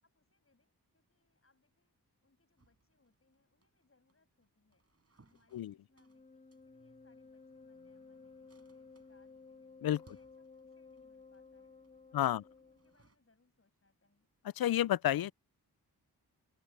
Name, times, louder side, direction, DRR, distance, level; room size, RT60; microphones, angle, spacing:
voice 1, 0.0-1.9 2.2-4.8 5.2-9.7 10.0-11.8 12.1-14.3, left 3 dB, 35° left, 6.6 m, -75 dB
sound 1, 2.6-13.2, right 3 dB, 40° right, 7.2 m, -70 dB
Wind instrument woodwind instrument, 5.9-13.0, left 4 dB, 20° left, 3.0 m, -56 dB
voice 2, 12.1-12.4 14.6-15.3, left 12 dB, 65° left, 0.5 m, -30 dB
open air
cardioid pair, 70°, 39 cm